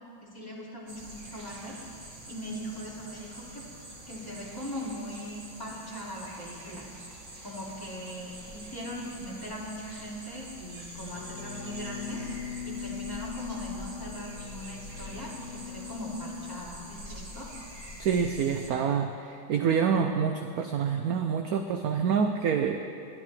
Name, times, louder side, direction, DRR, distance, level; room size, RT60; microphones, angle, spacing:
voice 1, 0.2-3.6 4.1-6.9 7.4-12.2 12.6-17.5, equal, 10° left, -6 dB, 2.3 m, -40 dB
sound 1, 0.9-18.7, right 1 dB, 40° right, 1.8 m, -45 dB
sound 2, 11.1-16.6, left 7 dB, 35° left, 1.9 m, -41 dB
voice 2, 18.0-22.8, right 7 dB, 70° right, 5 dB, 0.9 m, -27 dB
20.0 x 12.5 x 3.3 m, 2.4 s
omnidirectional pair, 2.1 m